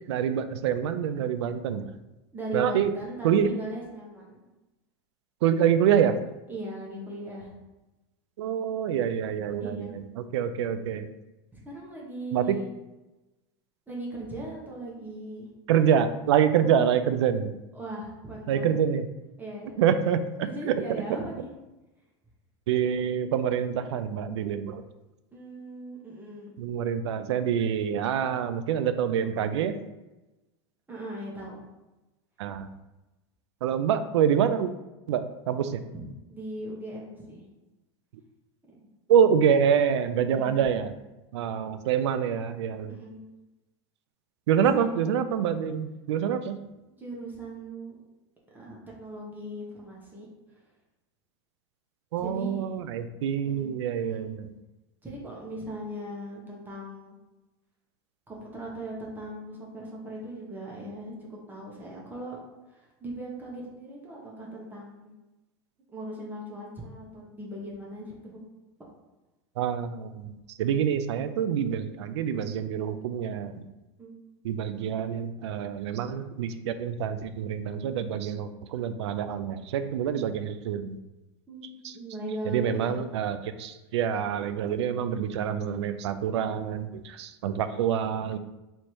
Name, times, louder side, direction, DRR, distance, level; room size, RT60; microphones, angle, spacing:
voice 1, 0.0-1.9 2.5-2.9 3.2-3.5 5.4-6.2 8.4-11.1 12.3-12.6 15.7-17.5 18.5-19.0 19.8-20.2 20.7-21.0 22.7-24.8 26.6-29.8 32.4-32.7 33.6-34.7 35.1-35.8 39.1-40.9 41.3-43.0 44.5-46.6 52.1-54.5 69.6-73.6 74.4-81.0 81.8-81.9 82.5-88.4, right 8 dB, 80° right, 11 dB, 0.4 m, -26 dB
voice 2, 2.3-4.4 6.5-7.5 9.6-9.9 11.6-12.6 13.9-15.5 16.6-16.9 17.7-18.7 19.4-19.8 20.4-21.5 25.3-26.5 30.9-31.6 35.9-37.4 38.7-38.8 40.3-40.6 42.9-43.2 44.7-45.0 47.0-48.0 48.5-50.7 52.2-52.6 53.4-54.3 55.0-57.2 58.3-62.4 62.7-65.1 65.9-68.4 74.0-74.1 81.5-83.1, right 1 dB, 15° right, -4 dB, 1.0 m, -39 dB
3.2 x 2.8 x 4.5 m, 1.0 s
supercardioid pair, 120°, 14 cm